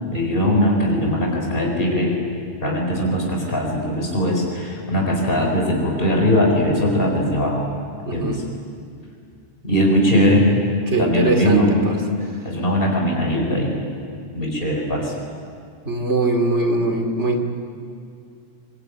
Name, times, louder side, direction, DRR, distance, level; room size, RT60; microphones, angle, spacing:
voice 1, 0.1-2.2 2.6-7.6 8.1-8.4 9.6-10.5 11.0-11.8 12.4-13.8 14.3-15.1, equal, 50° left, 0 dB, 4.7 m, -20 dB
voice 2, 8.0-8.4 10.9-11.9 15.8-17.4, right 2 dB, 70° right, 5 dB, 3.0 m, -21 dB
25.0 x 23.5 x 9.3 m, 2.3 s
omnidirectional pair, 1.2 m